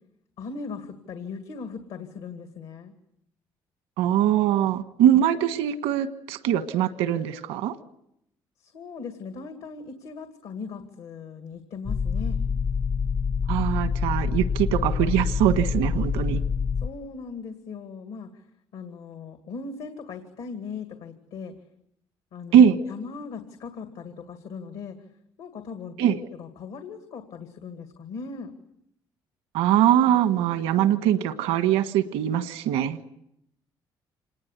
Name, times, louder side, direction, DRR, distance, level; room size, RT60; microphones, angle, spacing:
voice 1, 0.4-2.9 8.6-12.4 16.8-18.4 18.7-21.5 22.3-25.0 25.4-28.5, left 5 dB, 80° left, 7 dB, 2.3 m, -39 dB
voice 2, 4.0-7.8 13.5-16.4 22.5-22.8 26.0-26.2 29.5-33.0, right 10 dB, 90° right, 10 dB, 1.4 m, -22 dB
sound 1, 11.9-16.9, left 6 dB, 50° left, 1.0 m, -26 dB
26.5 x 19.5 x 8.2 m, 0.78 s
supercardioid pair, 70°, 10 cm